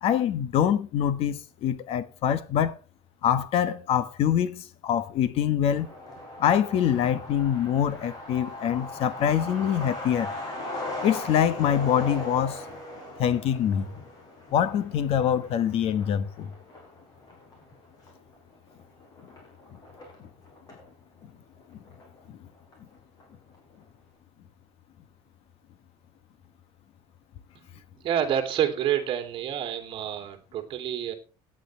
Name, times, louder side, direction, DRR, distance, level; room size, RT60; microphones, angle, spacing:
voice 1, 0.0-2.8 3.2-5.9 6.4-10.3 11.0-12.6 13.2-13.9 14.5-16.5, left 9 dB, 50° left, 1.2 m, -25 dB
Truck, 5.7-20.9 21.2-21.3 21.6-22.5 22.7-22.8 23.2-23.6, left 1 dB, 30° left, 5.4 m, -39 dB
voice 2, 27.5-31.1, right 10 dB, 40° right, 2.8 m, -29 dB
17.0 x 10.0 x 3.3 m
cardioid pair, 170°, 13 cm